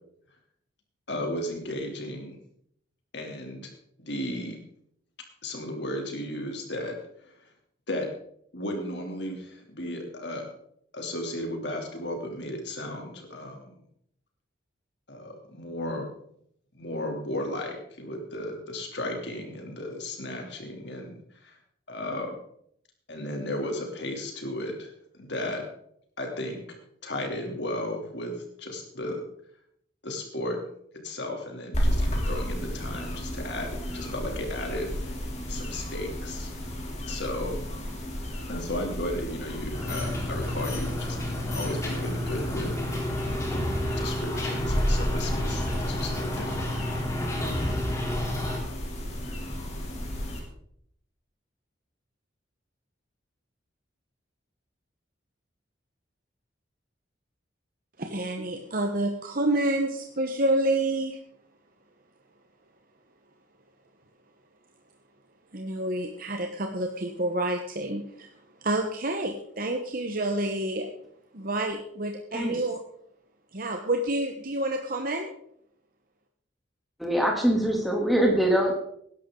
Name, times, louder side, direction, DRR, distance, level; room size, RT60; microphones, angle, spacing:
voice 1, 1.1-2.4 3.1-3.7 4.0-4.6 5.4-7.5 7.9-8.1 8.5-10.5 10.9-13.8 15.1-16.1 16.7-21.6 21.9-22.3 23.1-25.6 26.2-29.2 30.0-30.6 31.0-35.2 35.5-36.5 37.0-37.6 38.5-41.2 41.5-42.7 43.2-46.7, left 1 dB, 65° left, 2 dB, 3.1 m, -35 dB
sound 1, 31.7-50.4, equal, 35° left, 3.1 m, -33 dB
sound 2, 39.7-48.6, left 1 dB, 15° left, 3.4 m, -31 dB
voice 2, 58.0-61.2 65.5-68.3 68.6-70.9 71.3-72.8 73.5-75.3, right 1 dB, 50° right, 4 dB, 1.1 m, -28 dB
voice 3, 77.0-78.8, right 1 dB, ahead, -1 dB, 2.9 m, -23 dB
19.0 x 11.0 x 3.9 m, 0.69 s
head